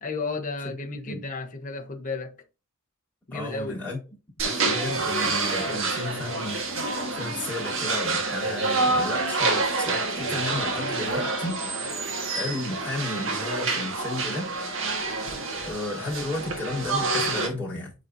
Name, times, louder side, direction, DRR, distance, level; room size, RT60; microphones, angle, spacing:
voice 1, 0.0-2.3 3.3-3.8, left 3 dB, 35° left, 1.1 m, -33 dB
voice 2, 3.3-4.0 4.4-6.6 7.1-11.6 12.3-14.5 15.6-17.9, left 2 dB, 5° left, 3.6 m, -33 dB
sound 1, 4.4-17.5, right 3 dB, 60° right, 1.7 m, -27 dB
8.9 x 4.1 x 2.8 m
head